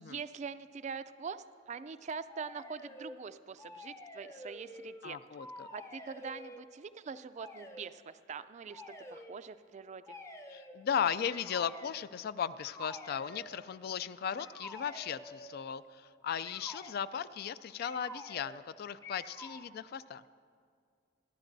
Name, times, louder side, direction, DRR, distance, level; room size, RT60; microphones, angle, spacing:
voice 1, 0.0-5.2 5.7-8.8 9.1-10.2, right 5 dB, 40° right, 13 dB, 0.4 m, -43 dB
sound 1, 2.3-3.2 3.6-5.1 5.3-6.6 7.4-7.8 8.7-9.3 10.0-10.8 11.3-12.1 12.6-13.5 14.4-15.6 16.4-17.0 17.8-18.7 19.0-19.7, left 1 dB, 15° left, 0.6 m, -49 dB
voice 2, 5.0-5.7 10.5-20.2, left 8 dB, 55° left, 16 dB, 0.3 m, -36 dB
26.5 x 10.5 x 2.7 m, 2.3 s
head